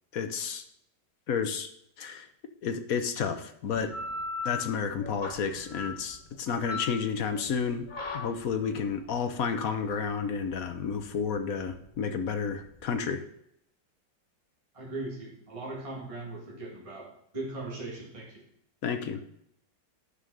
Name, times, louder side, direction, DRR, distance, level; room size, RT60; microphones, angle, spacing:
voice 1, 0.1-0.6 1.3-1.7 2.0-2.3 2.6-4.0 4.4-7.9 8.1-13.2 18.8-19.2, left 6 dB, 60° left, 8 dB, 1.2 m, -31 dB
sound 1, 3.7-12.9, left 3 dB, 30° left, 1.2 m, -40 dB
voice 2, 14.7-18.4, right 2 dB, 20° right, -4 dB, 2.0 m, -39 dB
10.0 x 5.6 x 6.3 m, 0.74 s
omnidirectional pair, 1.9 m